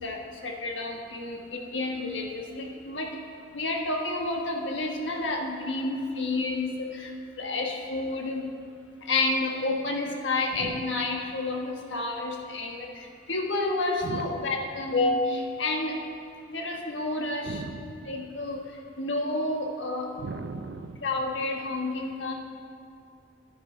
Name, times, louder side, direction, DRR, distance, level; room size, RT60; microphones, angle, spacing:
voice 1, 0.0-3.1 3.5-7.1 7.4-8.5 9.0-16.0 16.5-17.6 18.0-18.6 19.0-20.1 21.0-22.3, left 2 dB, 85° left, 1 dB, 1.4 m, -30 dB
voice 2, 17.4-18.0 20.2-21.0, right 4 dB, 70° right, 11 dB, 0.5 m, -36 dB
10.5 x 9.9 x 4.8 m, 2.5 s
head